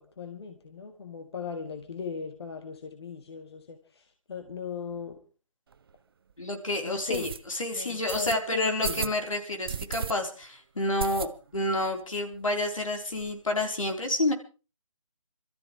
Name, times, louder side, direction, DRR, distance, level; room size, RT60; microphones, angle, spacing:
voice 1, 0.0-3.8 4.3-5.2 6.8-7.3 7.7-9.1, left 5 dB, 50° left, 6 dB, 1.6 m, -37 dB
sound 1, 5.7-5.8 6.3-6.4 7.1-7.4 8.1-8.4 8.8-9.2 9.7-10.1 10.4-10.5 11.0-11.6 12.0-12.1 12.3-12.4 12.7-13.3, right 6 dB, 45° right, 0.7 m, -34 dB
voice 2, 6.4-14.3, left 1 dB, 80° left, 3 dB, 3.9 m, -29 dB
26.5 x 13.5 x 3.2 m, 0.34 s
figure-of-eight pair, 155°, 17 cm